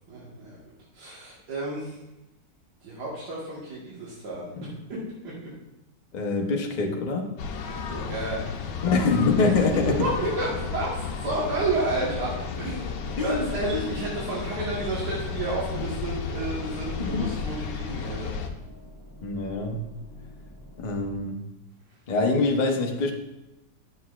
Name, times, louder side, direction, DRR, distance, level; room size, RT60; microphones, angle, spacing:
voice 1, 0.1-0.6 0.9-2.0 2.8-5.3 7.9-8.4 8.7-8.8 9.3-9.5 10.0-10.9 11.2-12.3 12.6-18.4, right 2 dB, 70° right, -7 dB, 2.0 m, -31 dB
voice 2, 6.1-7.3 8.8-9.9 13.2-13.5 13.7-14.0 17.0-17.3 19.2-19.8 20.8-21.4 22.1-23.1, left 3 dB, 45° left, 1 dB, 0.5 m, -25 dB
sound 1, 7.4-18.5, left 5 dB, 75° left, 1.3 m, -33 dB
sound 2, 8.5-21.2, left 1 dB, 25° left, 2.8 m, -47 dB
9.6 x 6.7 x 2.4 m, 0.95 s
omnidirectional pair, 1.9 m